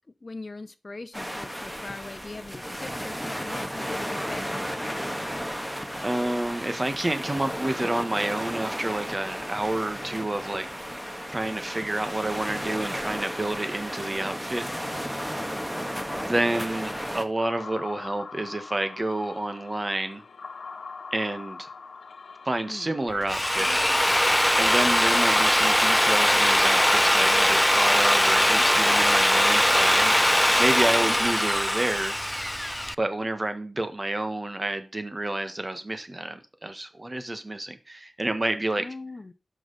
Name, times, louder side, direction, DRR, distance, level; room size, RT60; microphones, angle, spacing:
voice 1, 0.2-5.0 22.7-22.9 31.1-31.2 38.8-39.3, left 3 dB, 50° left, 0.7 m, -40 dB
sound 1, 1.1-17.2, equal, 5° right, 1.5 m, -34 dB
voice 2, 6.0-10.7 11.3-14.7 16.1-20.2 21.1-21.7 22.4-23.9 24.6-30.2 30.6-32.2 33.0-38.9, right 1 dB, 35° right, 1.5 m, -29 dB
sound 2, 17.4-30.5, left 4 dB, 90° left, 0.7 m, -42 dB
Drill, 23.1-32.9, left 1 dB, 10° left, 0.4 m, -21 dB
11.5 x 6.0 x 4.2 m
cardioid pair, 45°, 0 cm